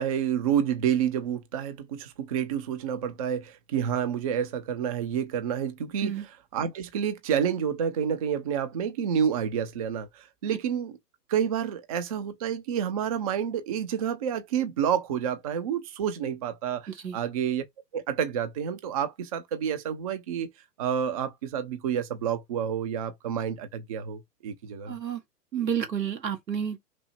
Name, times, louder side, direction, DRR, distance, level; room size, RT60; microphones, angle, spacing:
voice 1, 0.0-6.1 6.5-11.0 11.3-17.6 17.9-20.5 20.8-25.0, right 8 dB, 25° right, 0.4 m, -29 dB
voice 2, 16.9-17.2 24.9-25.2 25.5-26.8, right 8 dB, 90° right, 1.5 m, -30 dB
5.9 x 2.0 x 4.2 m
hypercardioid pair, 125°, 49 cm